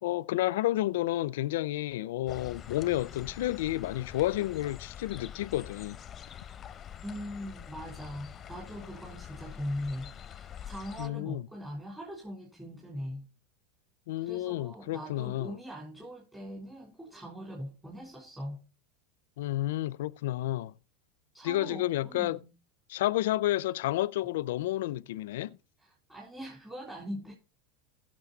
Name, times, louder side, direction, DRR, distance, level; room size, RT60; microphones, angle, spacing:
voice 1, 0.0-6.0 11.0-11.5 14.1-15.5 19.4-20.7 21.4-22.4 22.9-25.6, left 15 dB, 75° left, 0.4 m, -30 dB
sound 1, 2.3-11.1, left 9 dB, 25° left, 0.7 m, -45 dB
voice 2, 7.0-13.3 14.2-18.6 21.3-22.5 25.8-27.3, equal, 10° right, 3.4 m, -41 dB
16.0 x 6.6 x 3.9 m
supercardioid pair, 125°, 0 cm